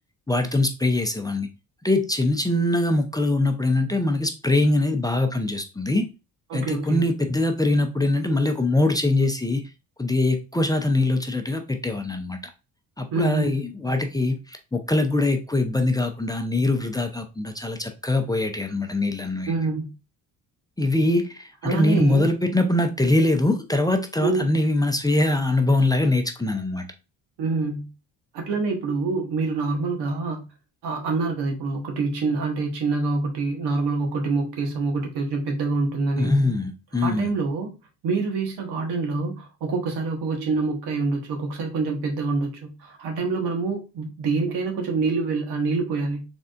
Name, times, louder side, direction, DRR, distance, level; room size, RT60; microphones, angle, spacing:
voice 1, 0.3-1.5 1.8-6.0 6.5-9.6 10.0-12.4 13.0-19.5 20.8-26.9 36.2-37.3, left 2 dB, 10° left, 0.5 m, -23 dB
voice 2, 6.5-7.0 13.1-13.6 19.5-19.9 21.6-22.2 24.2-24.4 27.4-27.9 28.3-30.4 30.8-36.3 37.0-37.7 38.0-46.2, right 3 dB, 85° right, 1.3 m, -26 dB
4.1 x 3.4 x 2.5 m
cardioid pair, 85°, 39 cm